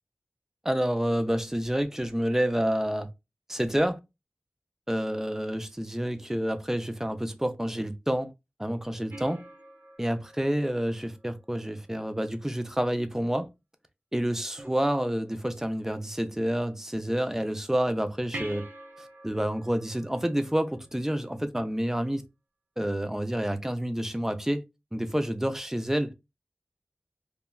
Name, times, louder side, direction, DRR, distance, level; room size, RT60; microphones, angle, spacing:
voice 1, 0.6-3.1 3.5-4.0 4.9-8.3 8.6-9.4 10.0-13.5 14.1-18.7 19.0-22.2 22.8-24.6 24.9-26.2, equal, 10° right, 0.5 m, -28 dB
sound 1, 9.1-11.7 14.6-15.5 18.3-21.3 24.3-24.4, right 1 dB, 55° right, 0.6 m, -46 dB
3.0 x 2.2 x 2.2 m
wide cardioid pair, 55°, 4 cm